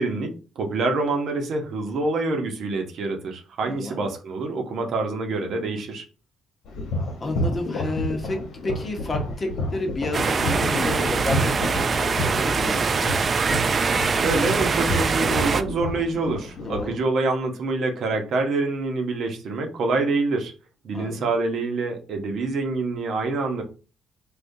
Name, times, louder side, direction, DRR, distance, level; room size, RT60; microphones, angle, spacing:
voice 1, 0.0-6.0 14.1-20.5 20.8-23.6, right 3 dB, 70° right, 4 dB, 0.8 m, -26 dB
voice 2, 3.6-4.0 7.2-13.3 16.6-17.0 20.9-21.3, left 2 dB, 30° left, 3 dB, 0.9 m, -31 dB
sound 1, 6.6-16.9, left 1 dB, 75° left, 1.0 m, -30 dB
sound 2, 10.1-15.6, right 5 dB, 40° right, 0.3 m, -23 dB
3.6 x 2.4 x 2.7 m, 0.34 s
cardioid pair, 90°, 0 cm